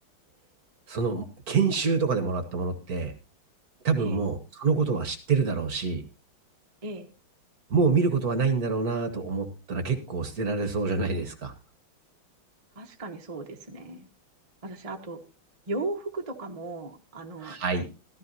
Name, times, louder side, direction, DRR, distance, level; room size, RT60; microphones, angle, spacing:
voice 1, 0.9-3.1 3.8-6.0 7.7-11.5 17.4-17.9, right 4 dB, 50° right, 8 dB, 1.6 m, -26 dB
voice 2, 12.7-14.1 14.6-15.2 15.7-17.6, right 2 dB, 20° right, 3 dB, 1.1 m, -36 dB
14.0 x 14.0 x 2.7 m, 0.33 s
omnidirectional pair, 2.3 m